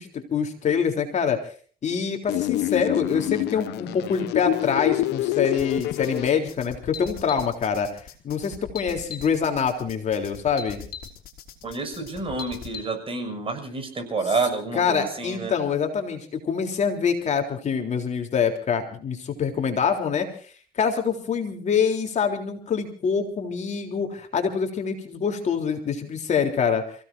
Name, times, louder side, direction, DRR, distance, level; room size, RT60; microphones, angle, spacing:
voice 1, 0.0-1.4 1.8-7.9 8.2-10.8 14.8-26.8, left 6 dB, 45° left, 4 dB, 3.6 m, -25 dB
sound 1, 2.3-6.3, left 15 dB, 85° left, 0.9 m, -26 dB
sound 2, 5.6-12.8, left 8 dB, 60° left, 4.1 m, -40 dB
voice 2, 11.6-15.5, right 3 dB, 35° right, 6 dB, 6.3 m, -29 dB
30.0 x 16.5 x 2.7 m, 0.43 s
cardioid pair, 110°, 17 cm